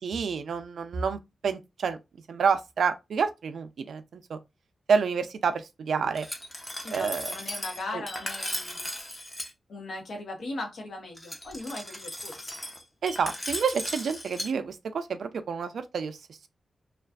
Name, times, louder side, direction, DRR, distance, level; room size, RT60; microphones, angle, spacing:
voice 1, 0.0-2.0 2.3-4.4 4.9-6.3 6.9-7.3 7.9-8.0 13.0-16.2, right 6 dB, 85° right, 0.4 m, -28 dB
Glass, 6.2-9.5 11.2-14.5, left 1 dB, 10° left, 0.5 m, -37 dB
voice 2, 6.8-8.9 9.7-12.5, left 2 dB, 75° left, 0.9 m, -38 dB
2.4 x 2.3 x 2.3 m
wide cardioid pair, 110°, 0 cm